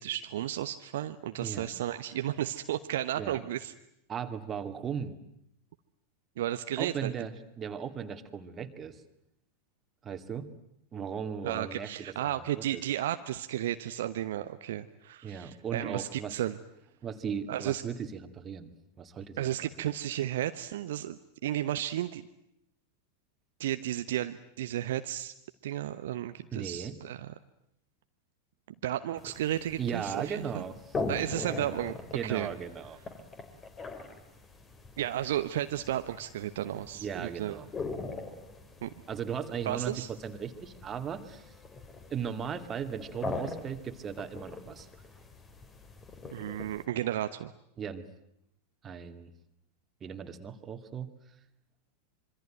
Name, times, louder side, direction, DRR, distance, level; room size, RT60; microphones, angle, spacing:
voice 1, 0.0-3.7 6.4-7.1 11.4-16.6 17.5-17.8 19.4-22.2 23.6-25.3 25.6-27.3 28.8-30.6 31.1-32.0 32.2-32.5 35.0-37.6 38.8-38.9 39.6-40.1 46.3-47.5, right 12 dB, 55° right, 9 dB, 1.0 m, -33 dB
voice 2, 1.4-1.7 3.2-3.4 4.1-5.2 6.8-9.0 10.0-10.5 10.9-12.8 15.2-16.3 17.0-18.7 19.0-19.5 19.8-19.9 26.5-27.0 29.8-31.0 32.1-33.0 36.7-37.7 39.1-41.5 42.1-44.9 47.8-48.0 48.8-49.3 50.0-51.1, right 7 dB, 25° right, 8 dB, 2.4 m, -37 dB
sound 1, 29.2-46.8, left 3 dB, 20° left, 3.6 m, -42 dB
26.0 x 24.5 x 9.2 m, 0.79 s
figure-of-eight pair, 90°, 0 cm